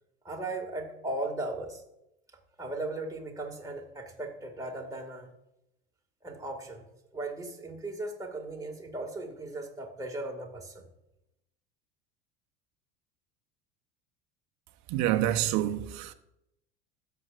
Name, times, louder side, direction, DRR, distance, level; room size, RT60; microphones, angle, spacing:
voice 1, 0.2-1.8 2.6-5.3 6.2-6.8 7.1-10.9, right 2 dB, 10° right, 2.1 m, -37 dB
voice 2, 14.9-16.1, right 13 dB, 55° right, 0.9 m, -27 dB
16.5 x 7.0 x 2.5 m
hypercardioid pair, 85°, 33 cm